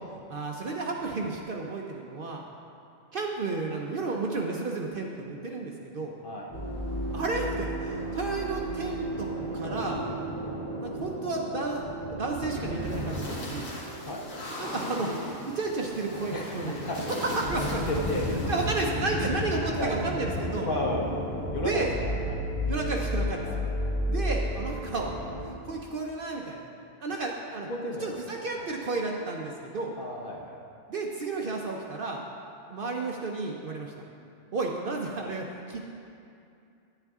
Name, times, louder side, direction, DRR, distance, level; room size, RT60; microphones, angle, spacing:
voice 1, 0.1-2.4 3.1-6.1 7.1-9.3 9.5-10.0 10.8-11.8 12.1-13.7 14.6-16.8 17.2-17.9 18.5-20.7 21.6-21.9 22.7-23.5 24.1-25.1 25.4-26.7 27.0-27.7 28.0-29.9 30.9-32.2 32.7-33.9 34.5-35.8, right 3 dB, 50° right, 0 dB, 0.7 m, -32 dB
sound 1, 6.5-25.5, equal, 85° left, 1.7 m, -33 dB
voice 2, 16.3-17.0 17.6-18.4 19.2-20.0 20.6-21.2 21.5-22.4 23.4-23.6 27.7-28.7 30.0-30.6, left 1 dB, 45° left, -1 dB, 1.0 m, -34 dB
9.3 x 8.9 x 3.6 m, 2.5 s
omnidirectional pair, 1.3 m